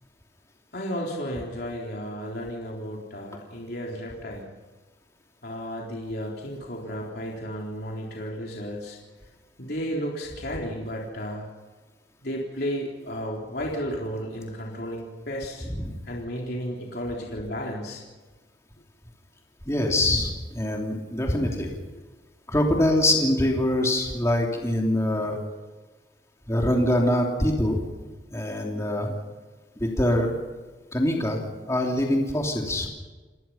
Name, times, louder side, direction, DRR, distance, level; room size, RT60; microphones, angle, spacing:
voice 1, 0.7-4.5 5.4-9.0 9.6-11.5 12.2-15.7 16.1-18.0 21.9-22.0, equal, 60° left, -2 dB, 3.8 m, -33 dB
voice 2, 19.7-21.8 22.5-25.4 26.5-27.8 28.3-29.1 29.8-30.3 30.9-31.4 31.7-32.9, left 1 dB, 15° left, 0 dB, 3.1 m, -24 dB
30.0 x 19.5 x 5.8 m, 1.3 s
head